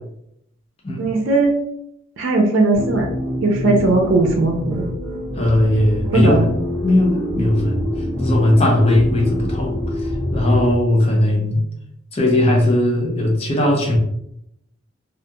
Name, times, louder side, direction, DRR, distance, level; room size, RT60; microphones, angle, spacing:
voice 1, 1.0-1.5 2.2-3.1 3.4-4.9 6.1-6.5, right 2 dB, 85° right, 2 dB, 0.4 m, -18 dB
sound 1, 2.7-10.7, left 1 dB, 20° right, 0.7 m, -25 dB
voice 2, 5.4-6.5 6.8-7.9 8.2-9.7 10.3-11.6 12.1-14.0, left 1 dB, 30° left, -1 dB, 0.5 m, -17 dB
2.4 x 2.2 x 2.8 m, 0.76 s
head